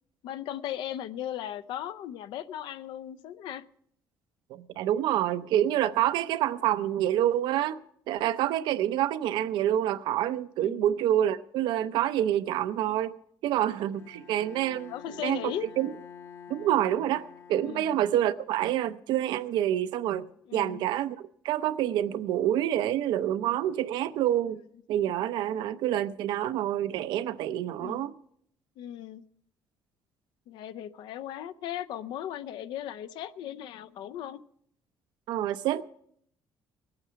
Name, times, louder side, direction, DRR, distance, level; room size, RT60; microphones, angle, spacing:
voice 1, 0.2-3.6 10.6-10.9 14.9-15.7 17.6-18.0 20.5-20.8 27.8-28.1 28.8-29.2 30.5-34.4, left 11 dB, 80° left, 0.6 m, -37 dB
voice 2, 4.5-7.8 8.1-13.2 13.4-14.9 15.2-15.9 16.5-24.6 24.9-28.1 35.3-35.8, right 12 dB, 80° right, 0.6 m, -27 dB
Bowed string instrument, 13.9-18.5, left 7 dB, 35° left, 0.8 m, -48 dB
20.0 x 8.8 x 5.7 m
cardioid pair, 140°, 8 cm